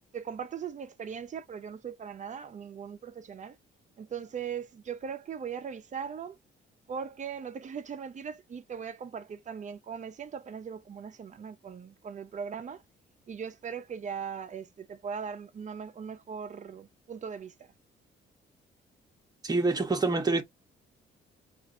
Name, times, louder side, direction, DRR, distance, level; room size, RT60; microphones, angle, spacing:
voice 1, 0.1-3.6 4.0-6.4 6.9-12.8 13.3-17.7, right 7 dB, 40° right, 0.7 m, -39 dB
voice 2, 19.4-20.4, right 3 dB, 20° right, 1.1 m, -26 dB
5.5 x 2.6 x 2.6 m
cardioid pair, 90°, 20 cm